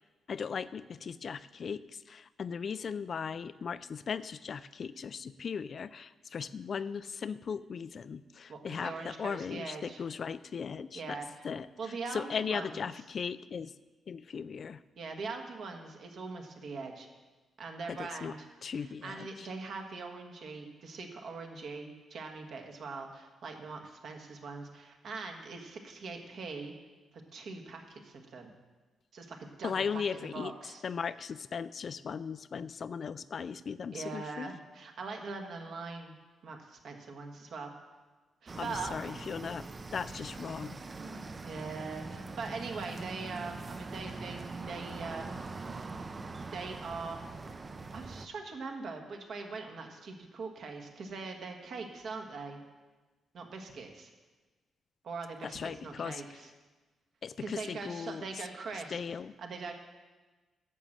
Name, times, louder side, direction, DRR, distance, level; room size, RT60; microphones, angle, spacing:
voice 1, 0.3-13.7 14.1-14.8 17.9-18.3 18.6-19.5 29.6-30.5 30.8-34.5 38.6-40.8 55.4-56.2 57.2-58.3 58.9-59.3, left 6 dB, 45° left, 15 dB, 0.3 m, -38 dB
voice 2, 8.5-10.0 10.9-11.3 11.8-12.7 15.0-17.1 17.6-18.4 18.8-26.7 27.3-28.5 29.1-30.8 33.9-36.1 36.4-37.7 38.4-38.9 41.4-45.5 46.5-47.2 47.9-52.6 53.3-54.1 55.0-56.5 57.4-59.0 59.4-59.7, right 4 dB, 60° right, 3 dB, 1.5 m, -42 dB
sound 1, 38.5-48.3, right 3 dB, 25° right, 0.5 m, -43 dB
10.5 x 6.6 x 7.4 m, 1.3 s
cardioid pair, 135°, 0 cm